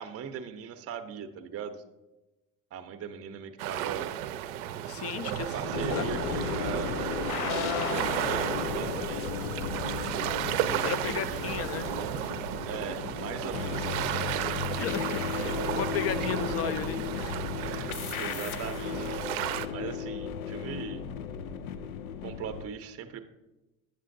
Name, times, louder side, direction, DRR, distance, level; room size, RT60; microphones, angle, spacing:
voice 1, 0.0-1.8 2.7-4.1 5.3-7.0 7.5-9.3 10.6-11.4 12.7-14.6 17.6-19.3 19.7-21.0 22.2-23.2, right 7 dB, 35° right, 7 dB, 0.6 m, -40 dB
sound 1, 3.6-19.7, right 12 dB, 70° right, 0.5 m, -33 dB
voice 2, 4.9-6.2 7.4-8.1 10.8-12.4 14.8-17.4, left 8 dB, 35° left, 13 dB, 0.5 m, -35 dB
sound 2, 5.2-12.1, left 3 dB, 60° left, 0.8 m, -45 dB
sound 3, 5.7-22.7, left 7 dB, 85° left, 0.5 m, -35 dB
8.8 x 6.7 x 2.6 m, 1.0 s
hypercardioid pair, 70°, 42 cm